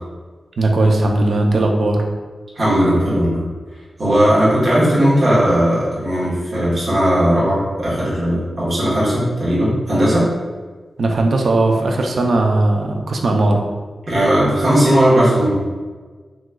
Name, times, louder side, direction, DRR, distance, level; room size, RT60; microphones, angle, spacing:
voice 1, 0.6-2.0 11.0-13.6, right 2 dB, 60° right, 2 dB, 0.4 m, -17 dB
voice 2, 2.5-3.4 4.0-10.3 14.1-15.6, equal, 40° right, -10 dB, 1.0 m, -16 dB
3.5 x 3.0 x 2.2 m, 1.4 s
wide cardioid pair, 175°, 0 cm